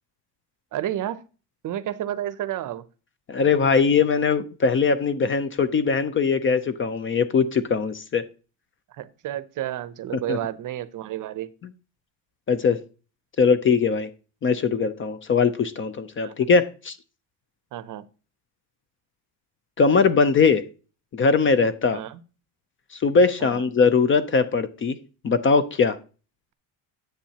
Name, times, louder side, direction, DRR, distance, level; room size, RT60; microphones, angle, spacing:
voice 1, 0.7-1.2 1.6-2.8 8.9-11.5 16.2-16.3 17.7-18.0 21.9-22.2 23.4-23.7, right 12 dB, 45° right, 0.6 m, -31 dB
voice 2, 3.3-8.2 10.3-10.4 12.5-12.8 13.4-14.1 14.4-17.0 19.8-20.7 21.1-22.0 23.0-25.0 25.2-26.0, left 5 dB, 30° left, 0.5 m, -21 dB
10.0 x 7.9 x 2.8 m
cardioid pair, 155°, 44 cm